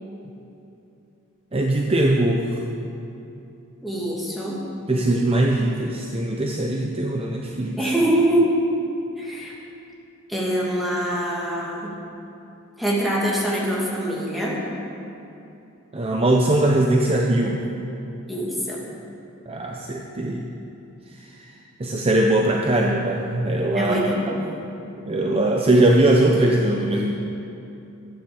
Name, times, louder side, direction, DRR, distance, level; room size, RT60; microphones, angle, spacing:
voice 1, 1.5-2.6 4.9-7.7 15.9-17.6 19.5-20.5 21.2-21.4 21.8-24.1 25.1-27.1, right 1 dB, 25° right, 0 dB, 0.7 m, -20 dB
voice 2, 3.8-4.6 7.8-8.5 9.2-9.5 10.3-11.9 12.8-14.6 18.3-18.8 23.7-24.4, right 1 dB, ahead, -6 dB, 2.6 m, -24 dB
13.0 x 9.5 x 7.0 m, 2.8 s
head